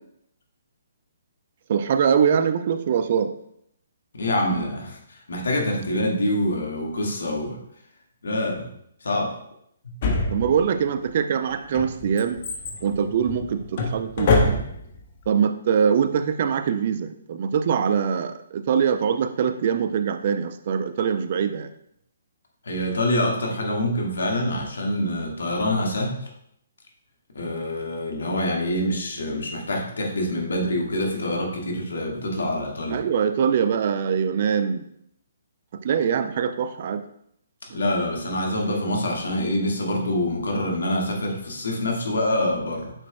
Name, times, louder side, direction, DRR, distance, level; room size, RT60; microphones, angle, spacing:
voice 1, 1.7-3.3 10.3-12.4 12.8-14.6 15.3-21.7 32.9-34.8 35.8-37.0, right 7 dB, 45° right, 10 dB, 0.5 m, -23 dB
voice 2, 4.1-7.6 8.2-8.7 9.0-9.3 22.7-26.2 27.4-33.0 37.7-42.9, left 1 dB, 65° left, 0 dB, 1.8 m, -25 dB
Drawer open or close, 10.0-10.9 11.5-15.0 15.2-15.3, left 3 dB, 45° left, 1.3 m, -25 dB
8.8 x 6.1 x 2.2 m, 0.71 s
figure-of-eight pair, 130°, 0 cm